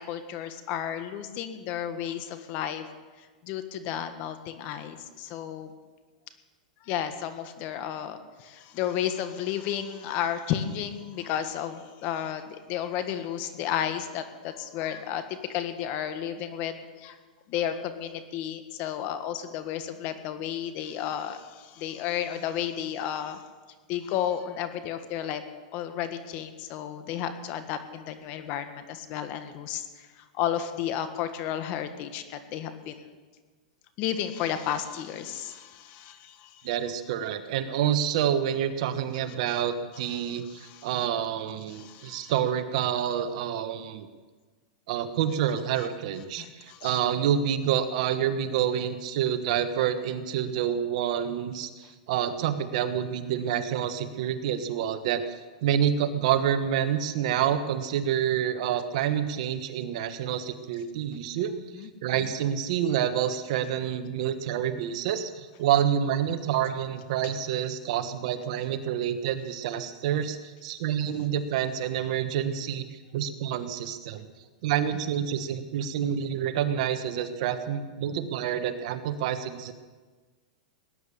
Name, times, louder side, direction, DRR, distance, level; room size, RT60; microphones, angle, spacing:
voice 1, 0.1-2.8 3.4-5.7 6.8-17.2 17.5-23.4 23.9-25.4 25.7-30.1 30.3-33.0 34.0-36.5 40.6-40.9 41.7-42.3 46.4-47.0 61.7-61.9, left 10 dB, 45° left, 9 dB, 1.6 m, -32 dB
voice 2, 36.6-44.1 44.9-55.2 55.6-74.3 74.6-79.7, right 9 dB, 60° right, 10 dB, 1.4 m, -28 dB
18.5 x 10.5 x 7.0 m, 1.3 s
hypercardioid pair, 135°, 4 cm